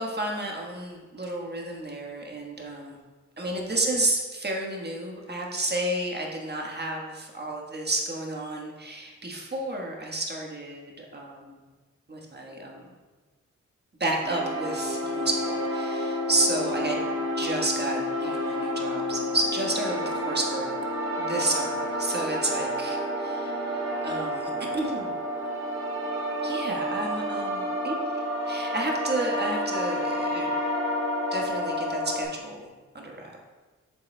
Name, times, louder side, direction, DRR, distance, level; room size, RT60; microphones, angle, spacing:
voice 1, 0.0-3.0 3.4-11.6 12.1-12.8 14.0-17.0 17.4-20.7 21.2-25.1 26.4-28.0 28.5-30.5 31.3-32.7 32.9-33.4, right 2 dB, 35° right, -1 dB, 1.4 m, -31 dB
sound 1, 14.2-32.2, equal, 60° right, 2.3 m, -29 dB
8.5 x 6.9 x 2.2 m, 1.3 s
wide cardioid pair, 85°, 29 cm